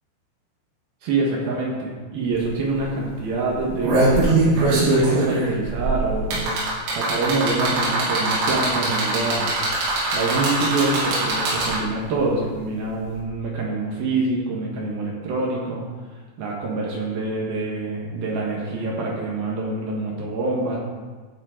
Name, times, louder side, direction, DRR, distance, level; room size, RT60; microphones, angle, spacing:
voice 1, 1.0-6.6 6.9-9.5 10.1-15.8 16.4-20.8, right 3 dB, 65° right, -2 dB, 2.6 m, -25 dB
sound 1, 2.3-2.4 2.7-3.0 3.5-12.0 13.2-13.3, right 2 dB, 90° right, 6.1 m, -22 dB
15.0 x 7.5 x 3.8 m, 1.4 s
omnidirectional pair, 6.0 m